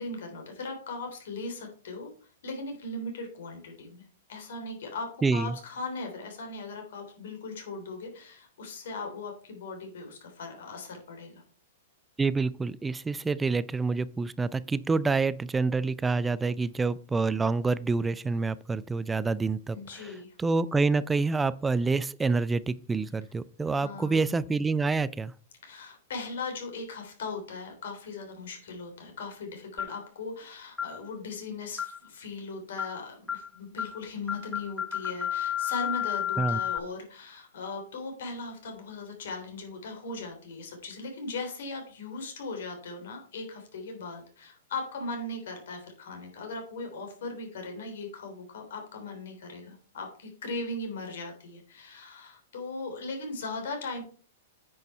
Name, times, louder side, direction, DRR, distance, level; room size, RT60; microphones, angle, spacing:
voice 1, 0.0-2.1 2.4-4.0 4.3-11.4 19.7-20.3 23.7-24.2 25.6-54.0, left 3 dB, 70° left, 3.1 m, -38 dB
voice 2, 5.2-5.6 12.2-25.3 36.4-36.6, right 4 dB, 10° right, 0.4 m, -27 dB
sound 1, 29.8-30.1 30.8-31.0 31.8-32.1 32.8-33.0 33.3-33.5 33.8-34.0 34.3-36.8, left 10 dB, 15° left, 0.9 m, -32 dB
9.4 x 5.4 x 4.4 m
hypercardioid pair, 115°, 0 cm